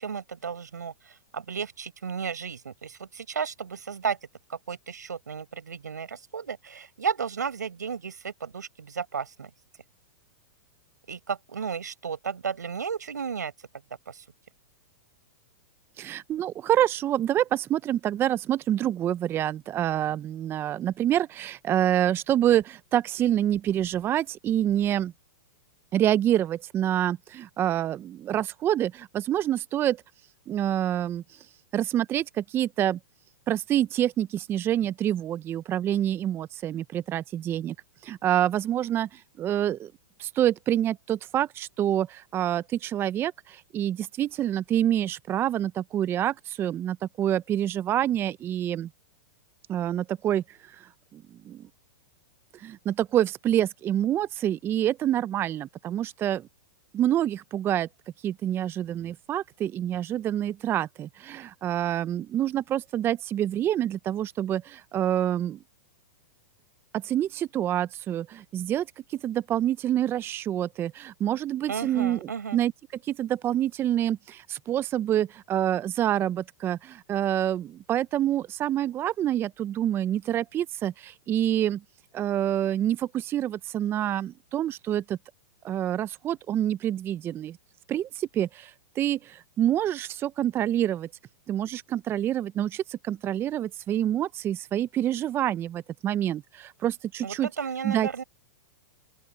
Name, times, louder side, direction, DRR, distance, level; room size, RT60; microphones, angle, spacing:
voice 1, 0.0-4.2 4.5-9.5 11.1-13.5 14.1-14.2 71.7-72.6 97.2-98.2, right 6 dB, 90° right, 7.2 m, -33 dB
voice 2, 16.0-25.1 25.9-30.0 30.5-31.5 31.7-33.0 33.5-37.7 38.0-39.9 40.2-48.9 49.7-51.7 52.5-56.5 56.9-57.9 58.2-65.6 66.9-72.7 73.0-81.8 82.1-85.2 85.6-87.6 87.9-91.1 91.5-97.5 97.8-98.2, right 11 dB, 25° right, 0.7 m, -27 dB
open air
hypercardioid pair, 120°, 9 cm